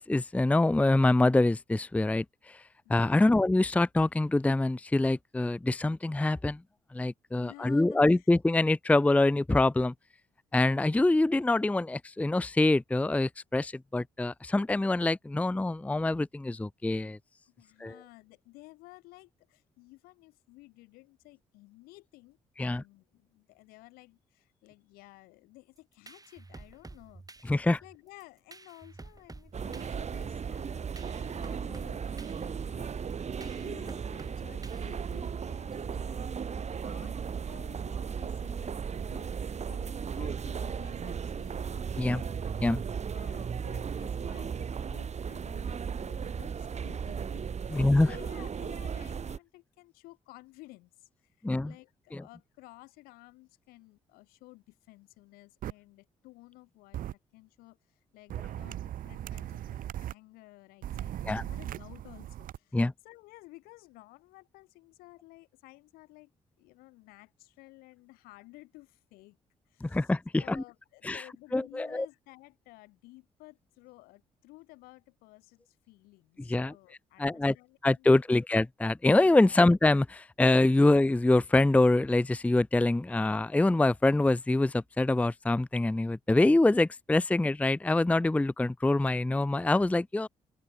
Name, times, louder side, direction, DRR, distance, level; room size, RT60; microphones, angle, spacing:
voice 1, 0.0-2.6 2.9-6.6 6.9-9.9 10.5-17.2 17.8-17.9 22.6-22.8 27.5-27.8 42.0-42.2 42.6-42.8 47.7-48.1 51.4-51.7 52.1-52.2 61.2-61.4 62.7-62.9 69.8-70.6 71.0-71.2 71.5-72.1 76.5-76.7 77.2-77.5 77.8-90.3, left 2 dB, 10° left, 0.5 m, -25 dB
voice 2, 7.3-8.3 17.5-30.9 31.2-37.2 37.4-42.5 43.1-66.3 66.6-69.4 69.7-78.4 79.3-79.6, left 21 dB, 80° left, 7.6 m, -54 dB
sound 1, 25.8-35.4, right 3 dB, 25° right, 7.1 m, -51 dB
sound 2, 29.5-49.4, right 6 dB, 45° right, 3.6 m, -36 dB
sound 3, 55.6-55.7 56.9-57.1 58.3-60.1 60.8-62.6, right 12 dB, 65° right, 1.3 m, -38 dB
open air
hypercardioid pair, 50°, 15 cm